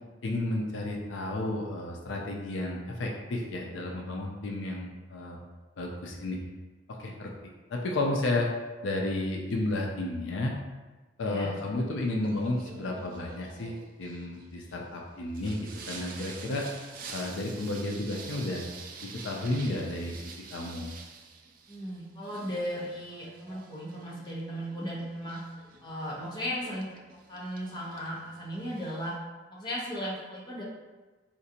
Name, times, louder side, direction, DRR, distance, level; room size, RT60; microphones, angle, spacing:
voice 1, 0.2-5.4 5.8-6.4 7.0-7.3 7.7-8.5 8.8-10.5 11.2-16.7 17.1-18.7 19.0-20.9, left 2 dB, 85° left, 0 dB, 0.4 m, -32 dB
Singing, 12.2-29.2, right 5 dB, 50° right, 0.4 m, -48 dB
voice 2, 21.7-25.4 25.8-26.9 27.3-29.1 29.5-30.6, equal, 25° left, -6 dB, 0.8 m, -36 dB
3.9 x 2.5 x 2.7 m, 1.2 s
head